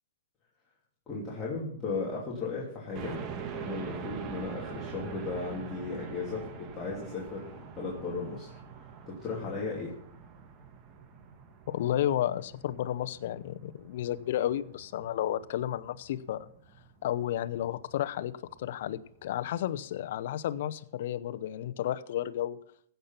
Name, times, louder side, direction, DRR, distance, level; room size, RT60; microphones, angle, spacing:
voice 1, 1.1-3.2 3.5-8.6 9.1-9.9, left 3 dB, 20° left, -6 dB, 2.9 m, -36 dB
sound 1, 2.9-19.6, right 6 dB, 30° right, 1.4 m, -45 dB
voice 2, 11.7-16.5 17.0-22.6, left 12 dB, 60° left, 12 dB, 0.7 m, -32 dB
15.5 x 6.8 x 5.8 m, 0.64 s
hypercardioid pair, 150°, 0 cm